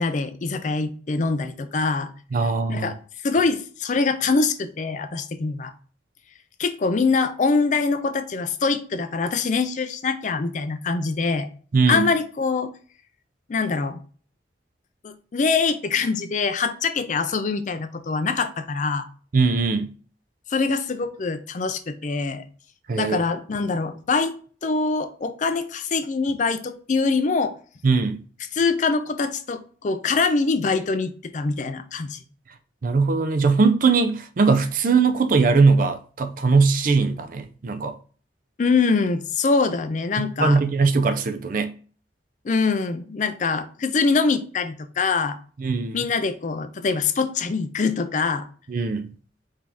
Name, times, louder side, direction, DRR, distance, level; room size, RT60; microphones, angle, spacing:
voice 1, 0.0-2.1 2.7-2.9 3.2-5.7 6.6-11.5 11.9-12.7 13.5-14.0 15.0-19.1 20.5-22.4 23.0-24.4 24.6-27.6 28.5-32.2 38.6-40.6 42.4-45.4 45.9-48.5, left 4 dB, 45° left, 0.4 m, -24 dB
voice 2, 2.3-2.9 11.7-12.1 19.3-19.9 22.9-23.2 27.8-28.2 32.8-37.9 40.2-41.7 45.6-46.1 48.7-49.1, right 4 dB, 50° right, 0.4 m, -20 dB
5.0 x 2.7 x 3.5 m
head